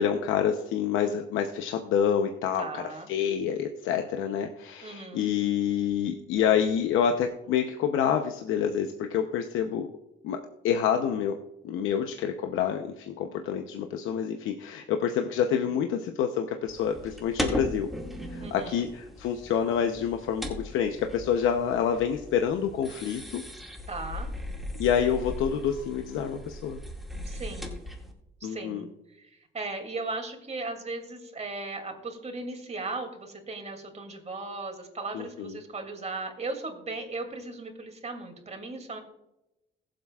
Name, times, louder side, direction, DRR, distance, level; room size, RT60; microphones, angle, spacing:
voice 1, 0.0-9.9 10.2-11.4 11.6-17.9 18.3-23.4 24.8-26.8 28.4-28.8 35.1-35.6, left 8 dB, 90° left, 5 dB, 0.8 m, -27 dB
voice 2, 2.6-3.1 4.8-5.3 15.5-15.7 18.4-18.9 23.9-24.3 27.2-27.8 28.4-28.9 29.2-29.3 29.5-39.0, right 3 dB, 35° right, 4 dB, 2.7 m, -37 dB
sound 1, 16.7-28.1, equal, ahead, 2.1 m, -38 dB
21.0 x 7.7 x 2.4 m, 0.92 s
cardioid pair, 90°, 20 cm